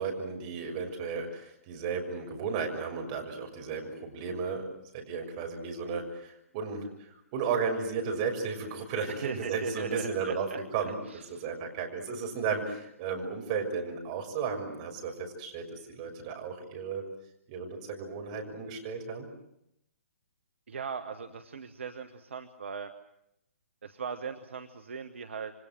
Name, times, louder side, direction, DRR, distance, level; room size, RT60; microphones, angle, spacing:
voice 1, 0.0-4.7 4.9-6.9 7.3-10.5 10.7-17.0 17.5-19.3, right 5 dB, 30° right, 2 dB, 6.6 m, -34 dB
voice 2, 9.2-10.6 11.1-11.4 20.7-22.9 23.8-25.5, right 6 dB, 60° right, 7 dB, 1.5 m, -38 dB
28.5 x 25.0 x 7.8 m, 0.80 s
figure-of-eight pair, 130°, 8 cm